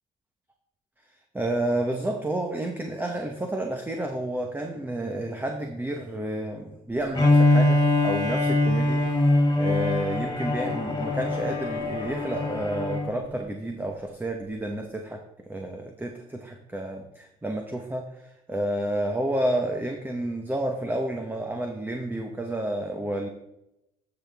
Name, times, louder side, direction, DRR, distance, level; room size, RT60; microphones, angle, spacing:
voice 1, 1.3-9.0 9.6-15.2 15.5-23.3, right 1 dB, 10° right, 3 dB, 0.9 m, -30 dB
Bowed string instrument, 7.1-13.2, left 1 dB, 20° left, 2.3 m, -23 dB
13.5 x 6.0 x 3.5 m, 0.88 s
cardioid pair, 110°, 17 cm